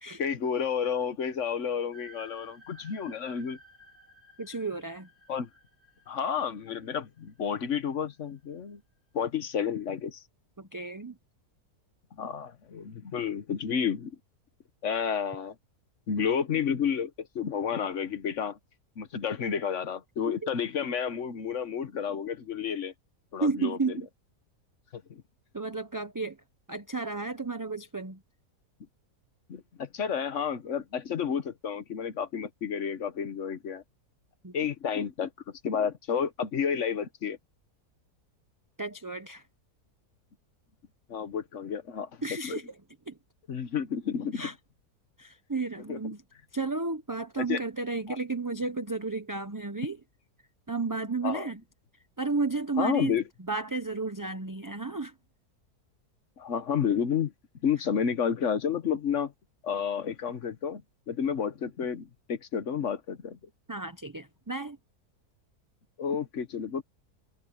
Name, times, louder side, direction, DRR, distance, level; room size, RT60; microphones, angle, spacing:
voice 1, 0.2-3.6 5.3-5.5 6.1-8.8 9.1-10.2 12.2-14.2 14.8-15.5 16.1-18.6 19.0-22.9 23.3-24.0 24.9-25.2 29.5-33.8 34.5-35.3 35.6-37.4 41.1-42.1 42.4-42.6 43.5-44.5 45.9-46.0 47.4-47.6 51.2-51.4 52.8-53.2 56.4-57.3 57.6-59.3 59.6-60.8 61.1-63.4 66.0-66.8, left 7 dB, 50° left, 1.4 m, -31 dB
sound 1, 1.9-8.1, equal, 10° left, 4.1 m, -55 dB
voice 2, 4.4-5.1 10.6-11.2 23.4-24.1 25.5-26.4 26.7-28.2 34.4-34.5 38.8-39.4 42.2-42.7 43.1-43.2 44.3-44.5 45.2-46.2 46.5-50.0 50.7-51.6 52.2-53.2 53.5-55.1 63.7-64.8, right 3 dB, 20° right, 0.6 m, -32 dB
omnidirectional pair, 1.7 m